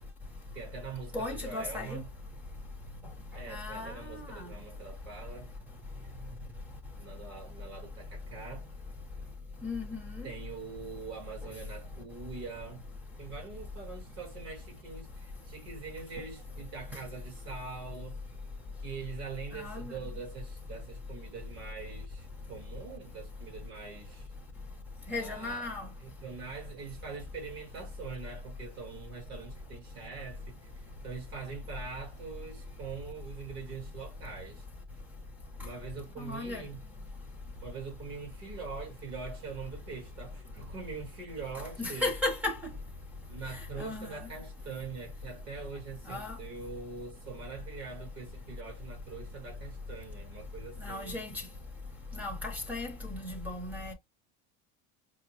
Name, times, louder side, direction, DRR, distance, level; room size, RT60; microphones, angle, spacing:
voice 1, 0.5-2.1 3.3-5.5 7.0-8.7 10.2-12.9 13.2-18.2 18.8-24.3 25.1-25.7 26.0-34.6 35.6-36.8 37.6-42.1 43.3-51.3, right 5 dB, 50° right, 1.6 m, -43 dB
voice 2, 1.1-2.1 3.5-4.3 9.6-10.3 19.5-19.9 25.1-25.9 36.2-36.6 41.8-42.6 43.8-44.1 46.1-46.4 50.8-51.3 52.2-53.9, left 2 dB, 5° right, 0.5 m, -35 dB
4.8 x 2.0 x 2.8 m
cardioid pair, 175°, 35 cm